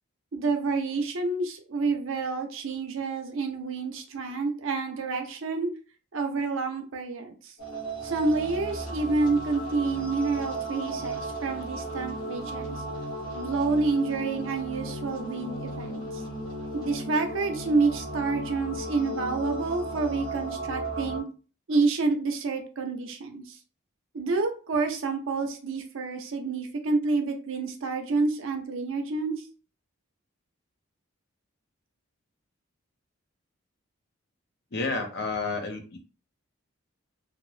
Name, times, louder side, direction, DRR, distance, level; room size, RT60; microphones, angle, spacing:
voice 1, 0.3-5.7 6.1-7.5 8.0-12.8 13.3-16.0 16.7-21.2 21.7-23.6 24.1-29.4, right 3 dB, 65° right, 5 dB, 0.5 m, -28 dB
sound 1, 7.6-21.2, right 1 dB, 20° left, 0.9 m, -35 dB
voice 2, 34.7-36.0, left 3 dB, 50° left, 4 dB, 0.6 m, -30 dB
2.5 x 2.0 x 3.1 m, 0.37 s
head